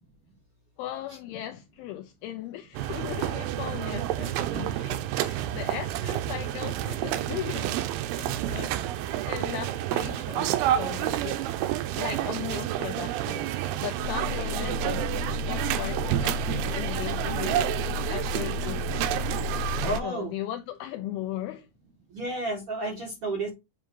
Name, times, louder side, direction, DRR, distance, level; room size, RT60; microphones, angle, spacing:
voice 1, 0.8-8.8 9.3-11.5 12.0-15.1 15.5-19.6 20.0-21.7, left 12 dB, 85° left, 2.2 m, -38 dB
sound 1, 2.7-20.0, right 12 dB, 90° right, 2.1 m, -29 dB
sound 2, 14.0-20.0, left 7 dB, 70° left, 2.1 m, -34 dB
voice 2, 19.8-20.3 22.1-23.5, right 2 dB, 60° right, 1.5 m, -31 dB
8.0 x 2.7 x 4.5 m
omnidirectional pair, 5.0 m